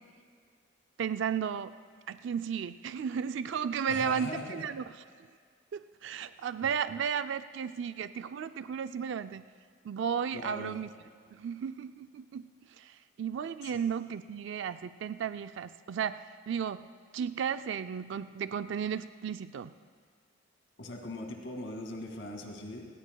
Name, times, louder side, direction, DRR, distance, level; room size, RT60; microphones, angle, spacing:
voice 1, 1.0-1.7 2.1-4.8 5.7-9.4 9.8-10.9 11.3-16.9 17.1-19.7, right 7 dB, 65° right, 11 dB, 0.4 m, -34 dB
voice 2, 3.9-4.6 10.3-10.8 13.6-13.8 20.8-22.9, left 1 dB, 75° left, 2 dB, 2.2 m, -40 dB
27.5 x 16.0 x 2.3 m, 2.1 s
head